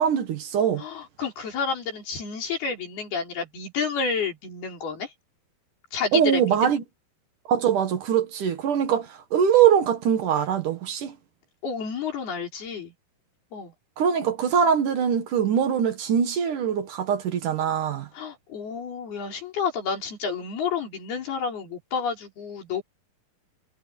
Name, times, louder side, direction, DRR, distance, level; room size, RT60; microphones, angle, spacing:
voice 1, 0.0-0.8 6.1-6.8 7.5-11.1 14.0-18.1, right 8 dB, 60° right, 2.9 m, -22 dB
voice 2, 0.8-5.1 5.9-6.7 11.6-12.9 13.5-13.7 18.1-22.8, left 5 dB, 80° left, 6.9 m, -30 dB
omnidirectional pair, 4.4 m